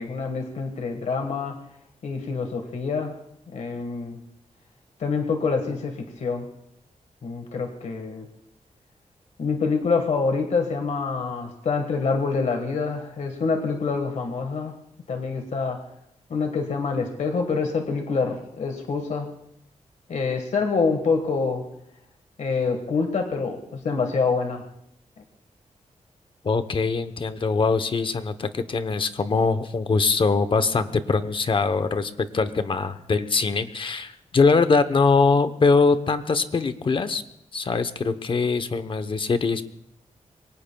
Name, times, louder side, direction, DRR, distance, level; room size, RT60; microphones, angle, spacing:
voice 1, 0.0-1.6 2.0-3.1 3.5-4.2 5.0-6.5 7.2-8.3 9.4-14.7 15.1-15.8 16.3-19.3 20.1-21.6 22.4-24.6, left 4 dB, 70° left, 4 dB, 1.5 m, -26 dB
voice 2, 26.4-37.2 37.5-39.6, left 4 dB, 40° left, 11 dB, 0.8 m, -22 dB
27.5 x 23.0 x 2.3 m, 0.79 s
wide cardioid pair, 155°, 13 cm